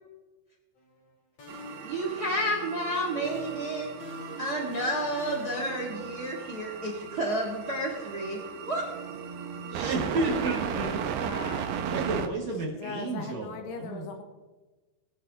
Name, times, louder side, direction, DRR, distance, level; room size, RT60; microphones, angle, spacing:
sound 1, 0.8-1.1 1.4-2.8 3.2-6.4, left 3 dB, 40° left, 2.9 m, -47 dB
sound 2, 1.5-12.3, right 7 dB, 75° right, 2.3 m, -36 dB
voice 1, 1.8-3.9 4.4-8.8, equal, 90° right, -1 dB, 0.8 m, -31 dB
voice 2, 9.7-11.0 11.5-14.1, right 2 dB, 55° right, -1 dB, 2.3 m, -32 dB
voice 3, 11.2-11.7 12.8-14.2, left 5 dB, 75° left, 4 dB, 3.0 m, -39 dB
21.0 x 10.0 x 2.8 m, 1.2 s
omnidirectional pair, 4.9 m